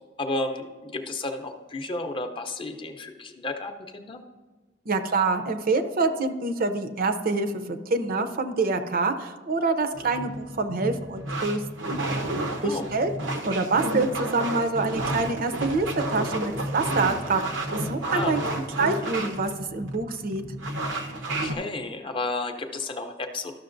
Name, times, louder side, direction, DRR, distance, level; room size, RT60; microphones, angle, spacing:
voice 1, 0.2-4.2 12.6-12.9 18.1-18.3 21.4-23.5, left 2 dB, 30° left, 5 dB, 0.6 m, -32 dB
voice 2, 4.9-11.6 12.6-13.1 13.4-17.4 17.8-20.4, right 3 dB, 50° right, 8 dB, 0.6 m, -26 dB
sound 1, 9.9-21.5, right 1 dB, 90° right, 0.9 m, -31 dB
13.0 x 6.2 x 2.6 m, 1.3 s
head